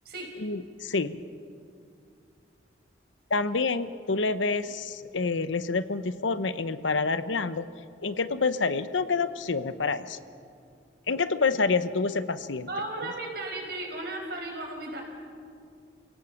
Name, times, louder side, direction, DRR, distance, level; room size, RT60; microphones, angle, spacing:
voice 1, 0.4-1.2 3.3-7.7 8.0-10.2 11.1-12.7, left 4 dB, 85° left, 12 dB, 0.9 m, -27 dB
voice 2, 12.7-15.0, right 2 dB, 55° right, 1 dB, 5.1 m, -35 dB
29.0 x 17.5 x 7.2 m, 2.3 s
head